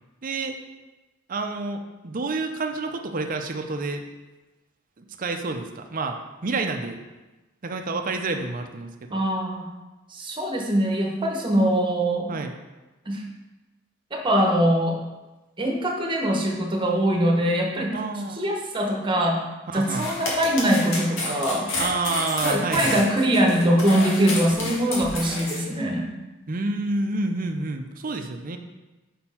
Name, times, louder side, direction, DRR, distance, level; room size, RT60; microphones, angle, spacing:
voice 1, 0.2-0.6 1.3-4.0 5.0-7.0 7.6-9.2 12.3-12.5 17.9-18.5 19.7-20.1 21.8-23.1 26.5-28.6, right 3 dB, 45° right, 5 dB, 0.6 m, -29 dB
voice 2, 9.1-9.7 10.1-12.3 13.0-13.2 14.1-15.0 15.6-17.9 18.4-19.4 19.7-21.7 22.4-26.1, right 1 dB, 25° right, 0 dB, 1.0 m, -22 dB
sound 1, 19.8-25.6, left 2 dB, 75° left, 1.8 m, -30 dB
5.5 x 4.4 x 5.6 m, 1.1 s
head